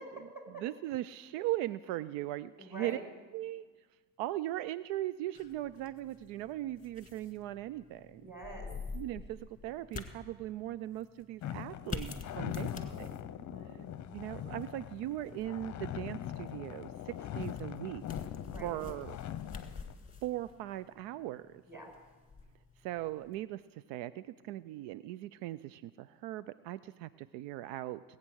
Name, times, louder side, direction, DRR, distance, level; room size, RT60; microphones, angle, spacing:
voice 1, 0.0-0.6 2.6-3.0 8.2-8.7 12.3-13.0 13.3-13.8 18.5-18.7 21.7-21.9, right 2 dB, 5° right, 1 dB, 5.0 m, -47 dB
voice 2, 0.6-3.0 3.3-3.6 4.2-8.3 8.9-12.7 13.0-13.1 14.1-18.0 18.6-19.2 20.2-21.6 22.8-28.0, right 14 dB, 75° right, 17 dB, 0.5 m, -39 dB
sound 1, 5.3-23.4, left 4 dB, 15° left, 1.7 m, -48 dB
sound 2, 11.4-19.9, left 11 dB, 40° left, 0.8 m, -41 dB
20.0 x 8.8 x 6.3 m, 1.4 s
supercardioid pair, 85°, 45 cm